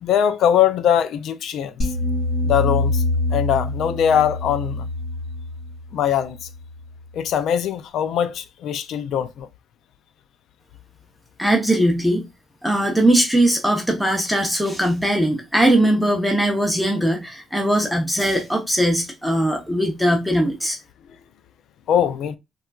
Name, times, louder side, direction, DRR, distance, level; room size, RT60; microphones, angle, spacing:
voice 1, 0.0-1.7 2.4-3.0 3.3-4.9 5.9-6.5 7.1-9.5 21.9-22.4, left 9 dB, 75° left, 0.3 m, -21 dB
sound 1, 1.8-7.0, left 2 dB, 50° left, 1.6 m, -25 dB
voice 2, 11.4-12.3 12.6-20.8, right 1 dB, ahead, 0.7 m, -20 dB
3.7 x 2.3 x 2.3 m
cardioid pair, 90°, 0 cm